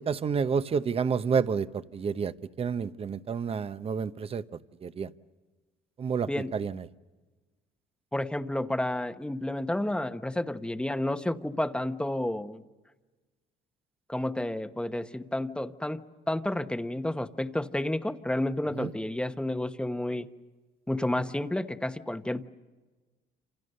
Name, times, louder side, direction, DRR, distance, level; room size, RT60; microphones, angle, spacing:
voice 1, 0.0-2.3 2.6-4.4 4.8-5.1 6.0-6.8 18.8-18.9, right 6 dB, 35° right, 13 dB, 0.9 m, -29 dB
voice 2, 6.3-6.6 8.1-12.6 14.1-20.3 20.9-22.5, left 1 dB, 5° left, 9 dB, 1.1 m, -31 dB
27.5 x 27.5 x 6.7 m, 1.2 s
cardioid pair, 110°, 17 cm